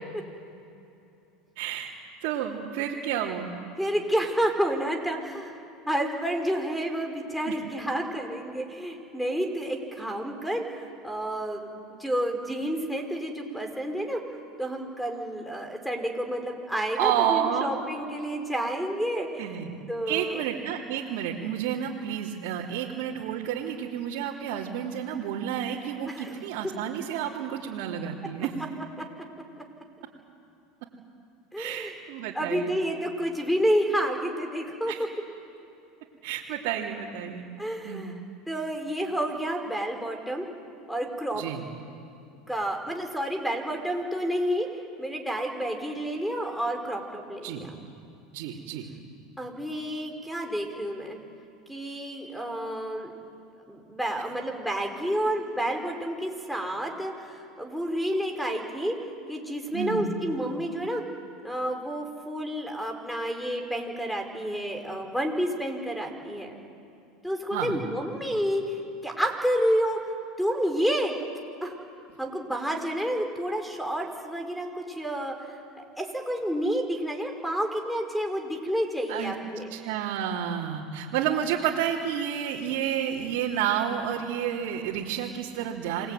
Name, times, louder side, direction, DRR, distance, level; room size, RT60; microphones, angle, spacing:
voice 1, 1.5-1.9 2.2-3.5 7.5-7.6 16.9-17.8 19.4-19.7 20.1-28.5 31.6-32.8 34.9-35.0 36.2-37.5 37.8-38.1 41.4-41.6 47.4-47.7 48.3-48.9 59.7-60.1 67.5-67.8 79.1-79.3 79.7-86.1, right 9 dB, 70° right, -5 dB, 3.4 m, -30 dB
voice 2, 3.8-5.6 5.9-11.7 12.0-14.2 14.6-19.5 19.9-20.4 26.0-26.4 31.5-31.9 32.3-34.9 37.6-38.1 38.5-40.5 40.9-41.4 42.5-44.7 45.0-47.8 49.4-51.2 51.7-53.1 53.7-58.9 59.3-61.0 61.4-66.5 67.2-68.6 69.0-70.0 70.4-71.1 71.6-71.7 72.2-79.7, equal, ahead, 5 dB, 5.1 m, -30 dB
28.0 x 21.0 x 9.4 m, 2.8 s
supercardioid pair, 105°, 0 cm